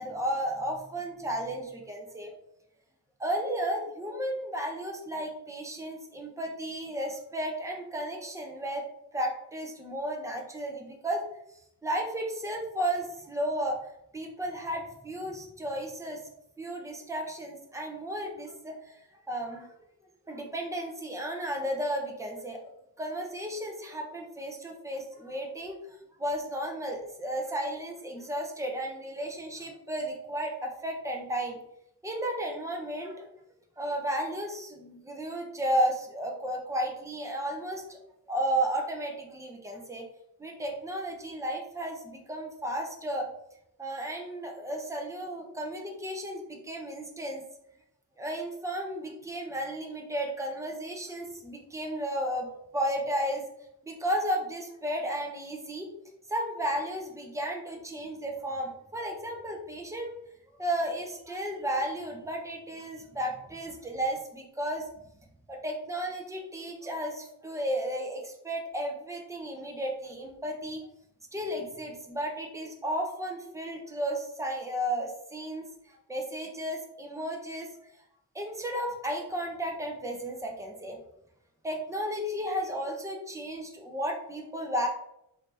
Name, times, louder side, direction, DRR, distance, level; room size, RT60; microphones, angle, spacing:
voice 1, 0.0-2.3 3.2-8.8 9.1-11.2 11.8-13.8 14.1-16.2 16.6-19.0 19.3-19.8 20.3-22.7 23.0-25.8 26.2-31.6 32.0-33.3 33.8-38.0 38.3-40.1 40.4-43.3 43.8-47.4 48.2-52.5 52.7-53.4 53.8-55.9 56.3-60.1 60.6-64.9 65.5-70.8 71.3-75.7 76.1-77.7 78.3-81.0 81.6-84.9, right 1 dB, 10° right, 1 dB, 0.7 m, -33 dB
4.9 x 2.7 x 3.3 m, 0.81 s
wide cardioid pair, 140°, 36 cm